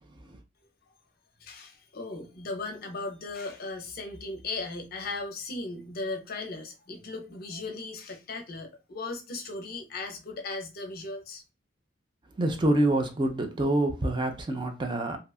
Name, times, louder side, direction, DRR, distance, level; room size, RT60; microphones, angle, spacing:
voice 1, 1.4-11.4, left 3 dB, 50° left, 0.6 m, -37 dB
voice 2, 12.4-15.2, right 1 dB, 25° right, 0.4 m, -26 dB
2.7 x 2.3 x 2.3 m
head